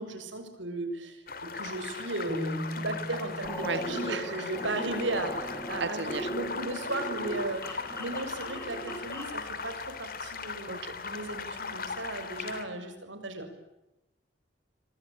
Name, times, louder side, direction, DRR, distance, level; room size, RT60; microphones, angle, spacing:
voice 1, 0.0-6.0 6.3-13.5, right 2 dB, 90° right, 8 dB, 6.8 m, -36 dB
sound 1, 1.3-12.6, left 4 dB, 50° left, 3.3 m, -39 dB
sound 2, 2.3-6.2, equal, 20° right, 5.0 m, -41 dB
sound 3, 3.4-9.4, right 1 dB, 15° left, 5.8 m, -38 dB
voice 2, 3.6-4.5 5.8-6.3 10.7-10.9, right 4 dB, 70° right, 12 dB, 2.0 m, -35 dB
26.0 x 25.0 x 9.0 m, 0.94 s
head